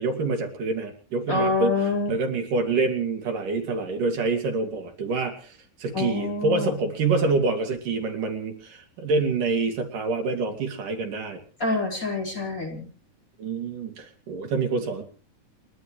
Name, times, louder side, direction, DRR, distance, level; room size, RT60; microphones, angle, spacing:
voice 1, 0.0-1.7 2.1-5.5 5.8-11.4 13.4-15.0, right 3 dB, 75° right, 4 dB, 4.5 m, -26 dB
voice 2, 1.3-2.1 5.9-6.7 11.6-12.9, left 3 dB, 25° left, 0 dB, 4.8 m, -26 dB
30.0 x 12.5 x 3.2 m, 0.37 s
omnidirectional pair, 3.8 m